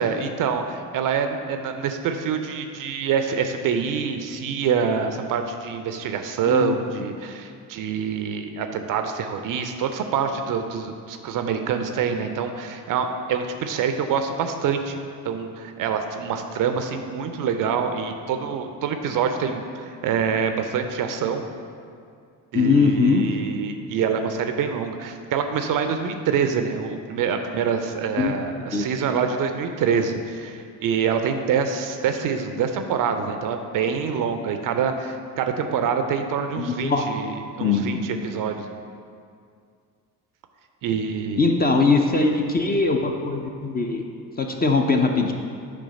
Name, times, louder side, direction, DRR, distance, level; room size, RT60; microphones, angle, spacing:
voice 1, 0.0-15.0 15.2-21.4 22.5-38.7 40.8-41.5, right 6 dB, 40° right, 6 dB, 0.6 m, -26 dB
voice 2, 6.5-7.0 22.5-23.2 28.2-28.4 28.7-28.9 36.6-37.0 37.6-38.0 41.4-44.0 44.4-45.3, left 4 dB, 20° left, 3 dB, 0.6 m, -21 dB
8.4 x 3.4 x 5.3 m, 2.3 s
figure-of-eight pair, 55°, 49 cm